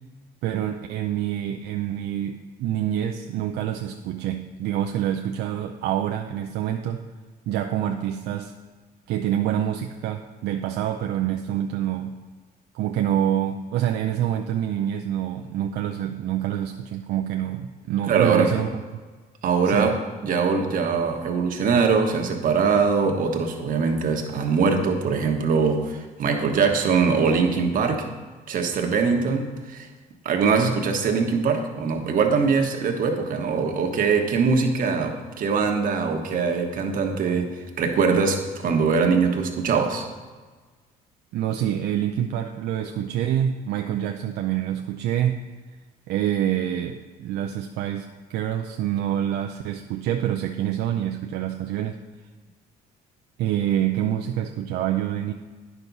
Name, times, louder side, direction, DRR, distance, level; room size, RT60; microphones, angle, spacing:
voice 1, 0.4-7.0 7.5-8.5 9.1-12.1 12.7-18.7 19.7-19.9 41.3-45.4 46.1-52.0 53.4-55.3, right 11 dB, 75° right, 3 dB, 0.5 m, -26 dB
voice 2, 18.1-18.5 19.4-28.1 28.5-29.9 30.2-40.1, right 5 dB, 55° right, 3 dB, 1.2 m, -22 dB
9.9 x 6.0 x 4.0 m, 1.4 s
cardioid pair, 110°, 17 cm